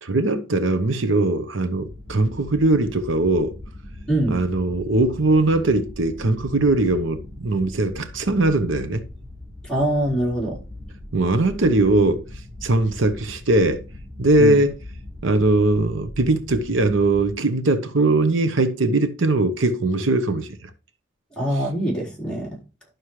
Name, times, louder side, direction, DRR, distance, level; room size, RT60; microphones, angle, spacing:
voice 1, 0.0-3.6 4.3-9.0 11.1-12.2 12.6-13.8 14.2-14.8 15.2-20.7, right 2 dB, 80° right, 1.0 m, -20 dB
sound 1, 1.7-17.3, left 1 dB, 20° right, 4.2 m, -40 dB
voice 2, 4.1-4.4 9.6-10.6 14.4-14.6 21.4-22.6, right 1 dB, 5° left, 3.9 m, -23 dB
11.5 x 6.3 x 3.2 m
head